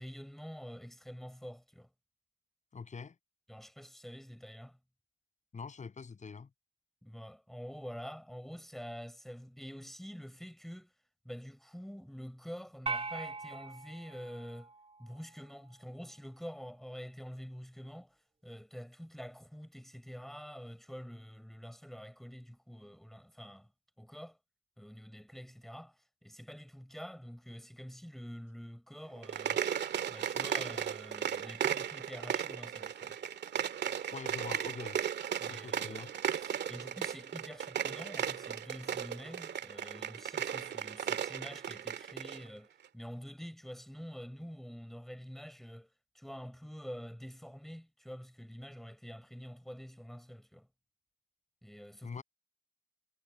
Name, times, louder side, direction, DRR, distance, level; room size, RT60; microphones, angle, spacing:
voice 1, 0.0-1.9 3.5-4.8 7.0-10.9 11.2-14.7 15.0-23.7 24.0-24.4 24.8-29.6 30.1-33.2 35.4-45.9 46.1-50.7 51.6-52.2, equal, ahead, 6.2 m, -47 dB
voice 2, 2.7-3.2 5.5-6.5 34.1-35.0 35.5-36.1 52.0-52.2, left 5 dB, 35° left, 7.5 m, -44 dB
sound 1, 12.9-15.3, right 3 dB, 30° right, 4.0 m, -41 dB
sound 2, 29.2-42.4, right 9 dB, 60° right, 2.1 m, -36 dB
cardioid pair, 90°, 20 cm